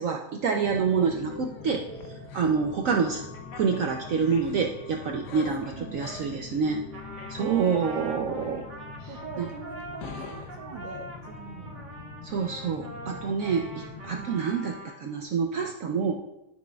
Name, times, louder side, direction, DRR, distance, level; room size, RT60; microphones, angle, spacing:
voice 1, 0.0-1.8 2.3-3.2 3.5-6.8 7.3-8.7 9.0-9.1 9.4-9.5 12.2-16.1, right 5 dB, 70° right, 2 dB, 0.8 m, -27 dB
sound 1, 0.6-14.2, left 5 dB, 70° left, 1.4 m, -42 dB
voice 2, 5.6-6.2 7.4-8.6 9.1-11.8 14.1-14.4, right 6 dB, 85° right, -1 dB, 1.5 m, -42 dB
Trumpet, 6.9-15.0, right 1 dB, 45° right, 1.8 m, -43 dB
12.5 x 6.2 x 2.3 m, 0.92 s
omnidirectional pair, 1.9 m